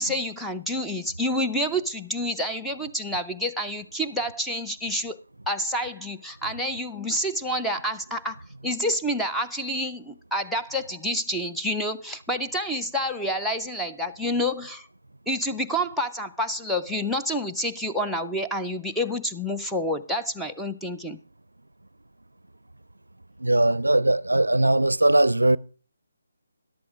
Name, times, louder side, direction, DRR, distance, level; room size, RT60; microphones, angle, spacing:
voice 1, 0.0-5.2 5.5-14.9 15.3-21.2, equal, ahead, 0.5 m, -28 dB
voice 2, 23.4-25.6, right 1 dB, 75° right, 0.4 m, -20 dB
13.5 x 11.5 x 3.6 m
figure-of-eight pair, 145°, 0 cm